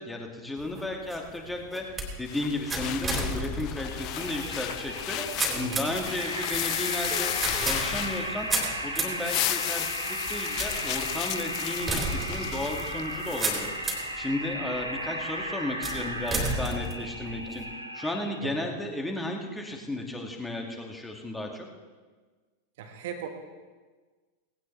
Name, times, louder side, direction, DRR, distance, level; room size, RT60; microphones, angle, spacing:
voice 1, 0.0-1.8 2.2-8.5 8.8-13.7 14.2-17.6 17.9-21.7, left 1 dB, 5° left, 1 dB, 2.3 m, -34 dB
sound 1, 0.6-14.2 14.7-15.2 15.8-17.6, right 2 dB, 15° right, 3.4 m, -34 dB
sound 2, 2.3-8.7 9.0-13.7, left 15 dB, 40° left, 0.6 m, -34 dB
sound 3, 3.8-18.4, right 1 dB, 85° right, 2.2 m, -36 dB
voice 2, 5.5-5.9 18.4-18.8 22.8-23.3, right 6 dB, 55° right, 4 dB, 1.7 m, -38 dB
19.0 x 17.0 x 3.4 m, 1.4 s
figure-of-eight pair, 90°, 0 cm